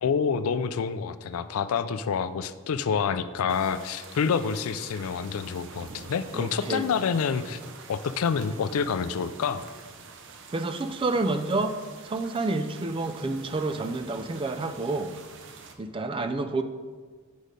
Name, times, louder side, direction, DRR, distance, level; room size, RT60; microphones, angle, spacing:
voice 1, 0.0-7.6 7.9-9.6, left 6 dB, 70° left, 13 dB, 0.4 m, -27 dB
sound 1, 3.5-15.8, right 4 dB, 55° right, 0.7 m, -47 dB
voice 2, 6.3-6.9 10.5-11.8 12.0-15.1 15.8-16.6, right 2 dB, 25° right, 9 dB, 0.3 m, -29 dB
6.4 x 5.1 x 5.1 m, 1.5 s
head